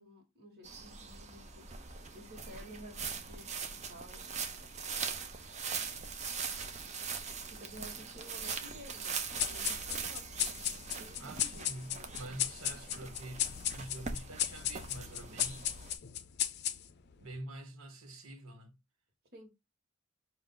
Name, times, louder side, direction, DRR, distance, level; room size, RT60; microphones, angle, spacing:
voice 1, 0.0-1.7 2.1-4.5 7.4-9.1 9.5-12.1 14.0-14.1 19.3-19.5, equal, 50° right, 1.5 m, -53 dB
sound 1, 0.6-16.0, right 5 dB, 35° right, 0.7 m, -41 dB
sound 2, 9.4-17.1, left 11 dB, 55° left, 0.5 m, -36 dB
voice 2, 11.2-15.7 17.2-18.7, right 1 dB, 85° right, 1.2 m, -47 dB
5.6 x 2.4 x 3.7 m
head